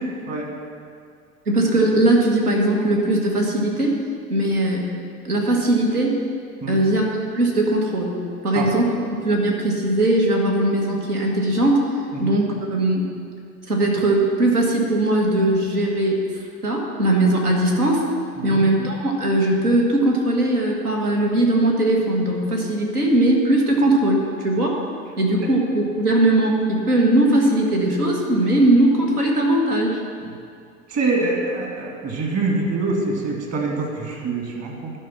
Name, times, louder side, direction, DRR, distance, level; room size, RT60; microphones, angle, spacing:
voice 1, 1.5-4.0 4.3-4.9 5.3-6.2 6.7-7.1 7.3-8.1 8.4-9.0 9.2-11.8 12.2-13.1 13.7-16.2 16.6-18.1 18.4-24.9 25.2-30.0, right 1 dB, 85° right, -1 dB, 1.6 m, -19 dB
voice 2, 30.9-34.9, right 3 dB, 35° right, 0 dB, 2.2 m, -25 dB
11.0 x 5.4 x 5.8 m, 2.3 s
figure-of-eight pair, 85°, 44 cm